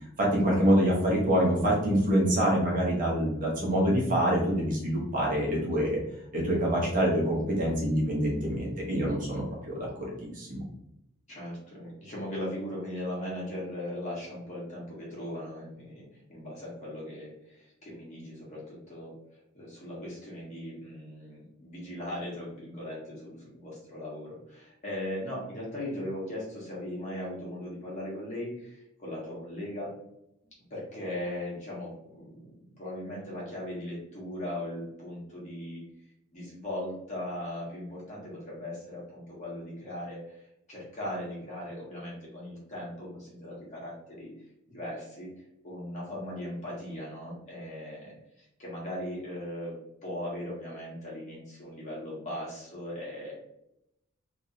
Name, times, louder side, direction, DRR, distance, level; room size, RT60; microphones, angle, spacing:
voice 1, 0.2-6.0 6.3-10.6, equal, 40° right, -4 dB, 1.2 m, -26 dB
voice 2, 6.4-6.8 11.3-16.0 16.3-19.1 19.5-29.9 30.7-35.8 36.3-40.4 40.7-44.3 44.7-45.3 45.6-48.1 48.4-53.3, left 1 dB, 35° left, -6 dB, 1.5 m, -38 dB
3.5 x 3.1 x 2.8 m, 0.84 s
head